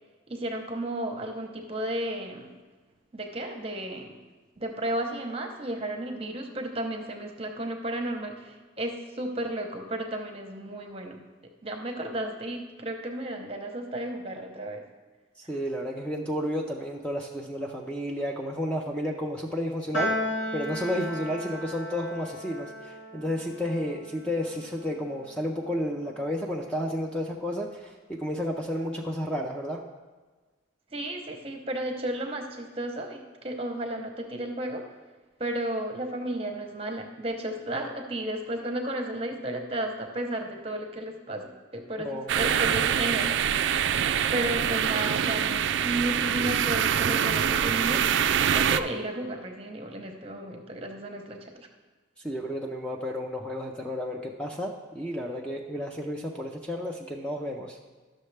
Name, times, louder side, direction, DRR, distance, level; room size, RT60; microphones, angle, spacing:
voice 1, 0.3-2.5 3.1-4.2 4.6-11.2 11.6-14.8 30.9-34.8 35.4-43.3 43.7-48.0 48.5-51.7, right 1 dB, 30° right, 3 dB, 0.9 m, -33 dB
voice 2, 15.5-20.1 20.5-29.8 42.0-42.3 52.2-57.9, equal, 5° left, 0 dB, 0.5 m, -32 dB
Piano, 19.9-26.5, equal, 80° left, 1.9 m, -36 dB
sound 1, 42.3-48.8, right 8 dB, 70° right, 0.3 m, -25 dB
12.0 x 6.4 x 3.4 m, 1.3 s
head